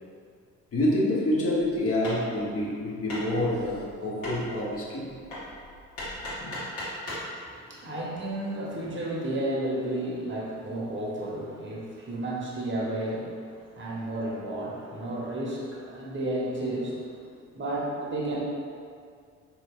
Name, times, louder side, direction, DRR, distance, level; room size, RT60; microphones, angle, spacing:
voice 1, 0.7-5.1 6.4-6.6, left 1 dB, 35° left, -4 dB, 0.9 m, -27 dB
Hammer, 1.7-7.3, left 1 dB, 70° left, 1.4 m, -39 dB
voice 2, 7.4-17.2 17.5-18.5, right 1 dB, 30° right, -4 dB, 1.0 m, -32 dB
4.1 x 2.8 x 2.4 m, 2.2 s
figure-of-eight pair, 40°, 37 cm